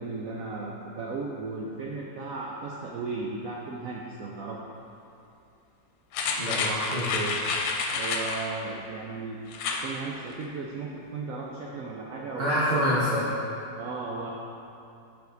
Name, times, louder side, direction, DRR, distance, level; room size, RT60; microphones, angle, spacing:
voice 1, 0.0-4.6 7.9-9.4 9.8-12.9 13.8-14.3, right 3 dB, 75° right, -2 dB, 0.7 m, -35 dB
sound 1, 6.1-8.5 9.5-9.9 10.3-10.4, left 4 dB, 90° left, 1.4 m, -29 dB
voice 2, 6.4-7.3 12.4-13.3, equal, 40° right, -10 dB, 1.0 m, -26 dB
6.4 x 5.2 x 3.9 m, 2.7 s
omnidirectional pair, 2.0 m